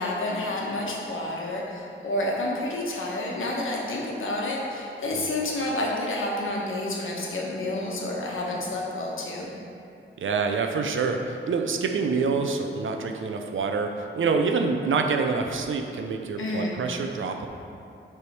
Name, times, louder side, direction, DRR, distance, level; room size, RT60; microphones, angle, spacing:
voice 1, 0.0-9.5 16.4-16.7, left 1 dB, 85° left, -3 dB, 1.1 m, -29 dB
voice 2, 10.2-17.5, right 4 dB, 80° right, 4 dB, 0.6 m, -26 dB
6.8 x 3.4 x 4.6 m, 2.5 s
wide cardioid pair, 105°, 20 cm